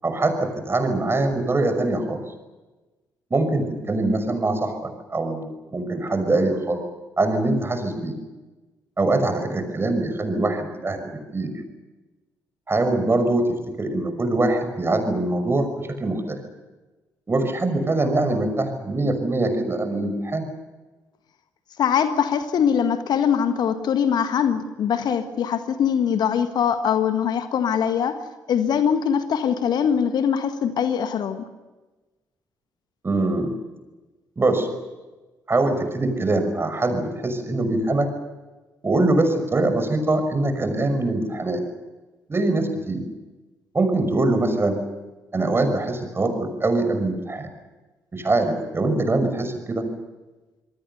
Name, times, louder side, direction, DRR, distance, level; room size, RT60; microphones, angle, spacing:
voice 1, 0.0-2.2 3.3-6.8 7.2-8.2 9.0-11.0 11.3-11.5 12.7-16.4 17.3-20.5 33.0-33.5 34.4-34.7 35.5-38.1 38.8-41.6 42.3-43.0 43.7-44.8 45.3-47.5 48.1-49.8, right 2 dB, 25° right, 8 dB, 5.9 m, -23 dB
voice 2, 21.8-28.2 28.5-31.4, left 8 dB, 55° left, 9 dB, 1.6 m, -22 dB
27.0 x 22.5 x 6.8 m, 1.2 s
figure-of-eight pair, 40°, 9 cm